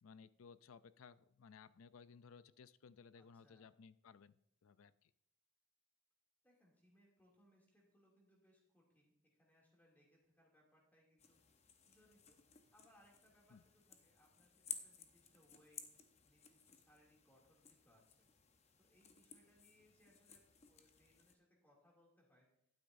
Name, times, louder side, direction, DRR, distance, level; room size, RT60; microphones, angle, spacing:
voice 1, 0.0-5.1 13.5-13.6, left 5 dB, 85° left, 16 dB, 0.4 m, -60 dB
voice 2, 3.1-3.7 6.4-11.4 11.8-12.4 12.7-15.8 16.2-18.3 18.8-22.5, equal, 10° left, -3 dB, 2.5 m, -72 dB
sound 1, 11.2-21.4, left 7 dB, 30° left, 0.7 m, -56 dB
11.5 x 9.4 x 2.6 m, 0.76 s
head